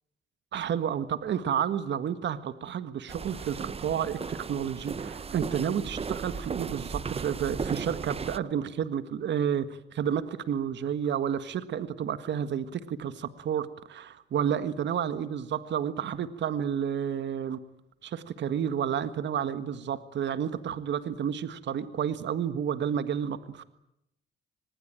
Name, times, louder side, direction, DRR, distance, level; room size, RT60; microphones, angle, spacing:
voice 1, 0.5-17.6 18.0-23.7, right 8 dB, 65° right, 12 dB, 1.7 m, -31 dB
sound 1, 3.1-8.4, right 5 dB, 30° right, 0.9 m, -36 dB
25.0 x 21.0 x 9.0 m, 0.82 s
cardioid pair, 90°, 20 cm